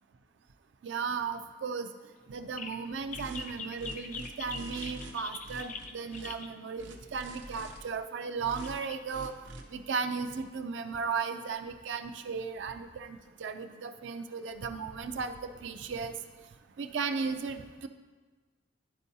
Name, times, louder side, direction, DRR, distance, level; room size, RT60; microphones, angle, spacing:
voice 1, 0.8-1.9 2.3-9.3 9.7-16.1 16.8-17.9, right 5 dB, 75° right, 8 dB, 0.4 m, -36 dB
sound 1, 2.3-2.4 2.6-2.7 3.1-6.5 8.0-8.1 8.5-8.9, left 5 dB, 40° left, 0.4 m, -42 dB
sound 2, 3.1-3.5 3.8-5.1 5.4-6.3 6.8-7.8 8.4-8.8 9.1-9.6, right 1 dB, 90° right, 0.9 m, -45 dB
11.5 x 4.5 x 2.7 m, 1.4 s
head